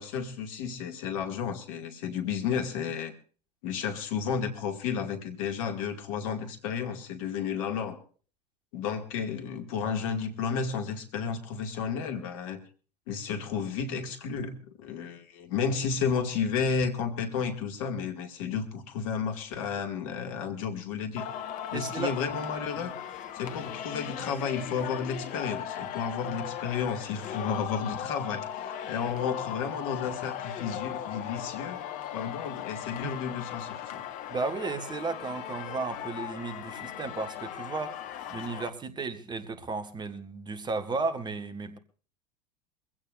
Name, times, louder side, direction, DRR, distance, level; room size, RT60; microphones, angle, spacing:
voice 1, 0.0-3.1 3.6-8.0 8.7-12.6 13.1-21.3 21.7-22.9 23.3-31.8 32.1-34.0, left 6 dB, 55° left, 2.2 m, -32 dB
Singing, 21.2-38.7, left 10 dB, 40° left, 1.3 m, -38 dB
voice 2, 21.7-22.1 22.8-22.9 34.3-41.8, right 4 dB, 20° right, 1.5 m, -34 dB
23.0 x 16.0 x 2.5 m
figure-of-eight pair, 80°, 21 cm